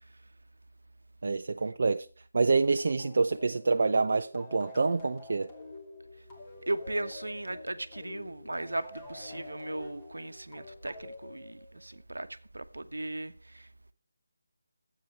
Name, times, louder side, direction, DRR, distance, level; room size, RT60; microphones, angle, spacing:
voice 1, 1.2-2.1 2.3-5.5, right 4 dB, 50° right, 0.5 m, -27 dB
sound 1, 2.8-12.0, left 2 dB, 20° left, 2.6 m, -47 dB
voice 2, 6.7-12.3 12.5-13.9, right 2 dB, 70° right, 1.0 m, -37 dB
12.5 x 8.4 x 6.4 m
figure-of-eight pair, 155°, 0 cm